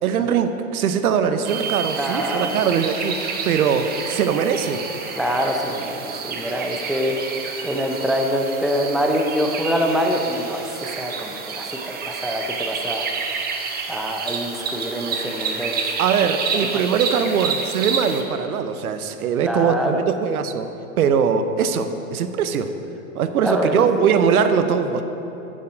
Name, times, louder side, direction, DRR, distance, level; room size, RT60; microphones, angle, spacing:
voice 1, 0.0-3.2 3.4-4.8 16.0-20.7 21.0-22.7 23.1-25.0, right 7 dB, 75° right, 9 dB, 0.7 m, -21 dB
sound 1, 1.5-18.2, right 5 dB, 20° right, 0.9 m, -29 dB
voice 2, 1.9-2.6 5.2-7.2 7.6-13.1 13.9-15.9 16.5-16.8 19.4-20.0 23.4-23.9, equal, ahead, 2 dB, 0.5 m, -25 dB
9.5 x 7.5 x 5.1 m, 3.0 s
hypercardioid pair, 110°, 43 cm